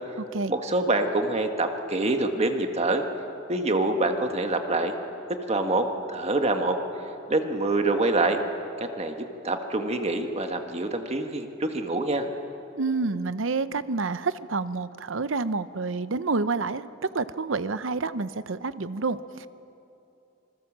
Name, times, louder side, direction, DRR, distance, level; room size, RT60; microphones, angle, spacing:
voice 1, 0.5-3.0 3.5-4.9 5.5-6.8 7.3-8.4 8.8-12.3, right 2 dB, 35° right, 5 dB, 1.6 m, -26 dB
voice 2, 12.8-19.5, right 4 dB, 70° right, 14 dB, 0.8 m, -28 dB
27.0 x 20.5 x 7.4 m, 2.8 s
head